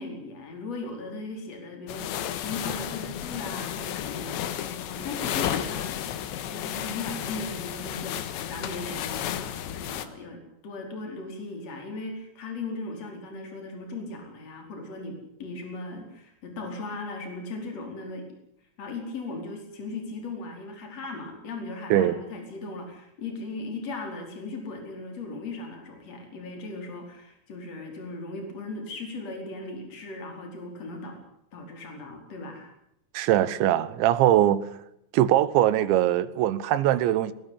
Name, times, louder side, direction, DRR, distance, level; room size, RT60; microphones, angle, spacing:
voice 1, 0.0-4.5 4.9-18.3 18.8-31.2 31.5-32.7, left 3 dB, 35° left, 5.6 m, -38 dB
sound 1, 1.9-10.1, left 10 dB, 80° left, 3.6 m, -33 dB
voice 2, 33.1-34.7 35.1-37.3, right 12 dB, 80° right, 3.4 m, -21 dB
22.0 x 19.5 x 8.6 m
omnidirectional pair, 5.2 m